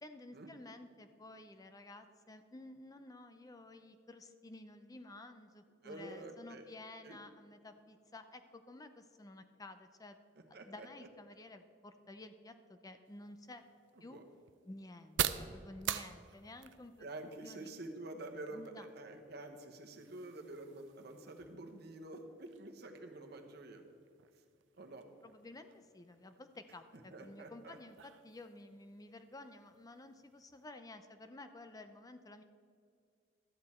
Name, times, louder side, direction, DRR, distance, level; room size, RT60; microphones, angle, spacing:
voice 1, 0.0-10.2 10.5-13.6 14.0-14.2 14.7-17.1 17.4-17.7 18.5-18.9 25.2-32.4, left 2 dB, 20° left, 9 dB, 0.5 m, -53 dB
voice 2, 5.8-6.7 7.0-7.2 10.5-10.9 14.1-14.2 17.0-23.8 24.8-25.1 27.1-27.8, right 2 dB, 60° right, 5 dB, 1.1 m, -48 dB
sound 1, 13.0-30.6, right 10 dB, 85° right, 0.5 m, -47 dB
12.5 x 8.3 x 4.3 m, 2.3 s
head